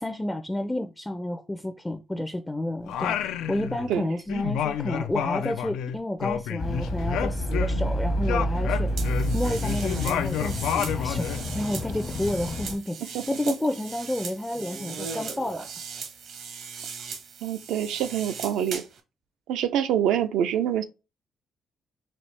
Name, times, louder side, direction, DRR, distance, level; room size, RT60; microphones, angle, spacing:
voice 1, 0.0-8.9 9.3-11.3 11.5-13.0 13.3-15.7, left 1 dB, 10° left, 0.4 m, -30 dB
Singing, 2.9-4.0 4.3-7.9 8.2-11.4, left 9 dB, 85° left, 0.3 m, -30 dB
sound 1, 6.6-12.8, equal, 55° left, 0.9 m, -29 dB
sound 2, 9.0-19.0, right 6 dB, 75° right, 0.9 m, -39 dB
voice 2, 13.1-13.5 17.4-18.8 19.5-20.8, right 10 dB, 90° right, 0.5 m, -26 dB
4.2 x 2.7 x 3.2 m
cardioid pair, 90°, 0 cm